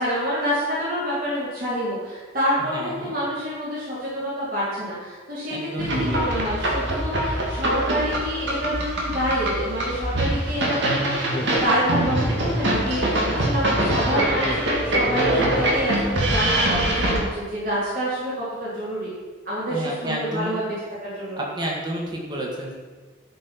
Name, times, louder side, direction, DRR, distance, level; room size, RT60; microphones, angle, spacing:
voice 1, 0.0-19.1 19.5-20.7 21.0-21.4, equal, 45° right, -9 dB, 3.6 m, -27 dB
voice 2, 2.6-3.1 5.5-6.4 19.7-20.6 21.4-22.7, right 1 dB, 20° right, -2 dB, 1.9 m, -31 dB
sound 1, 5.8-17.2, right 1 dB, 65° right, 2.4 m, -23 dB
Speech, 11.3-13.1 14.4-16.2, left 1 dB, 25° left, 0.9 m, -33 dB
13.0 x 5.5 x 5.9 m, 1.4 s
head